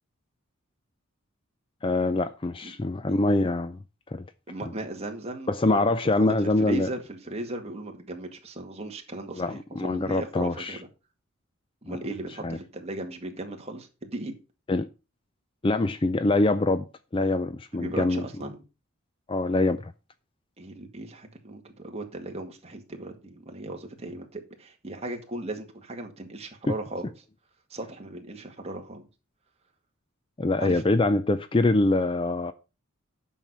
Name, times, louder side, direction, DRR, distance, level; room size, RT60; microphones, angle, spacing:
voice 1, 1.8-3.8 4.1-4.2 5.5-6.9 9.4-10.8 11.9-12.0 12.4-12.6 14.7-14.9 15.6-16.8 17.1-18.3 19.3-19.9 30.4-32.5, left 2 dB, 25° left, 0.4 m, -24 dB
voice 2, 4.5-5.8 6.2-6.3 6.6-10.9 11.8-14.3 17.7-18.6 20.6-27.1 27.7-29.1 30.6-30.8, right 2 dB, 30° right, 1.9 m, -37 dB
9.1 x 6.4 x 5.6 m
head